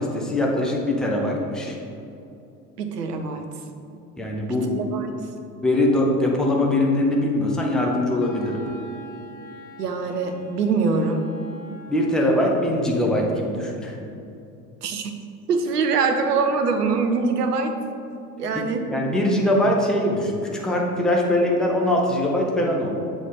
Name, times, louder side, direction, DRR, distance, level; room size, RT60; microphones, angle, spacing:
voice 1, 0.0-1.8 4.2-4.7 5.6-8.6 11.9-14.0 18.5-18.6 18.9-22.9, left 1 dB, ahead, -1 dB, 0.7 m, -22 dB
voice 2, 2.8-3.5 4.7-5.2 9.8-11.2 14.8-15.2 15.5-17.7 18.4-18.8, right 4 dB, 75° right, 6 dB, 0.8 m, -23 dB
Wind instrument woodwind instrument, 7.4-12.2, left 1 dB, 20° left, 0.3 m, -43 dB
7.1 x 4.2 x 3.6 m, 2.6 s
figure-of-eight pair, 75°, 48 cm